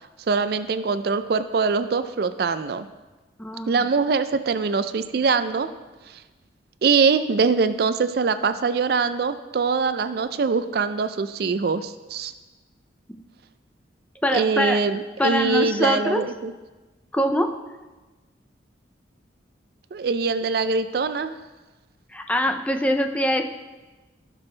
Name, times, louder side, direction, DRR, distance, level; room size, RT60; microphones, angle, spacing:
voice 1, 0.3-2.9 3.7-5.7 6.8-12.3 14.3-16.5 19.9-21.3, right 4 dB, 55° right, 12 dB, 0.4 m, -23 dB
voice 2, 3.4-3.9 13.1-13.2 14.2-14.8 15.2-16.2 17.1-17.5 22.1-23.4, equal, 5° left, 5 dB, 0.5 m, -23 dB
16.0 x 6.1 x 3.3 m, 1.2 s
head